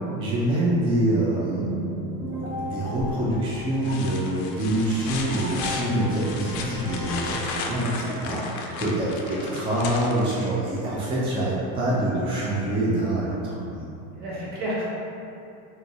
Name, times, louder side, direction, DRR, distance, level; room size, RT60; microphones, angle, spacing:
voice 1, 0.2-1.7 2.6-7.9 8.2-8.4 8.8-13.9, right 1 dB, 15° right, -7 dB, 0.4 m, -25 dB
sound 1, 1.5-8.3, left 1 dB, 35° right, 0.7 m, -35 dB
sound 2, 3.0-3.4 3.8-10.8 12.6-12.7, left 4 dB, 70° left, 0.5 m, -35 dB
voice 2, 7.8-8.4 9.2-9.7 14.1-14.8, right 1 dB, 75° right, -8 dB, 1.4 m, -33 dB
2.9 x 2.7 x 2.3 m, 2.7 s
supercardioid pair, 120°, 43 cm